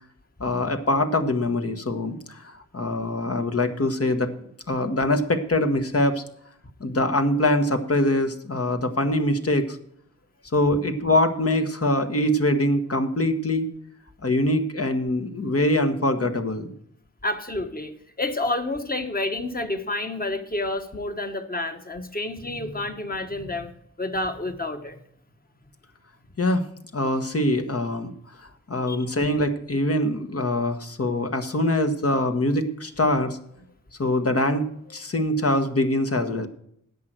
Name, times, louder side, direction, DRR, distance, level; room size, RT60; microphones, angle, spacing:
voice 1, 0.4-4.3 4.7-6.2 6.8-9.8 10.5-13.7 14.2-16.7 26.4-26.6 26.9-28.1 28.4-33.4 34.0-36.5, left 1 dB, 50° left, 6 dB, 1.3 m, -23 dB
voice 2, 17.2-17.9 18.2-23.7 24.0-25.0 28.9-29.1, left 2 dB, 30° left, 6 dB, 1.4 m, -29 dB
10.5 x 7.9 x 6.1 m, 0.70 s
wide cardioid pair, 70°, 31 cm